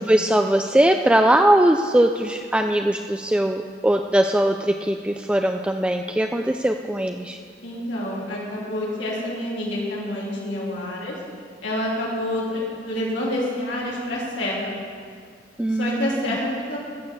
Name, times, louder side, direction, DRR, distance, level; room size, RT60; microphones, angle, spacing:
voice 1, 0.1-7.4 15.6-16.4, right 1 dB, 5° right, 5 dB, 0.3 m, -20 dB
voice 2, 7.6-11.1 11.6-14.8 15.7-16.8, left 1 dB, 80° left, -6 dB, 3.1 m, -28 dB
15.5 x 6.7 x 7.2 m, 2.1 s
head